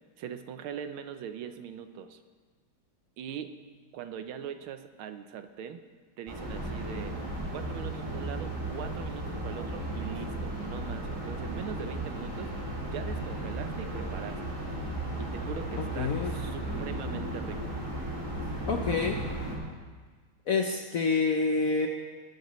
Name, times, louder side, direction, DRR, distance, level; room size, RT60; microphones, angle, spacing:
voice 1, 0.2-2.2 3.2-3.5 3.9-5.8 6.2-7.2 7.5-12.5 12.9-14.4 15.2-17.8, right 8 dB, 80° right, 9 dB, 1.6 m, -41 dB
sound 1, 6.3-19.6, right 1 dB, 15° right, 2.5 m, -35 dB
sound 2, 8.8-16.5, right 4 dB, 30° left, 2.8 m, -50 dB
voice 2, 15.8-16.3 18.7-19.2 20.5-21.9, left 4 dB, 65° left, 3 dB, 0.9 m, -27 dB
20.0 x 12.0 x 3.1 m, 1.5 s
omnidirectional pair, 2.3 m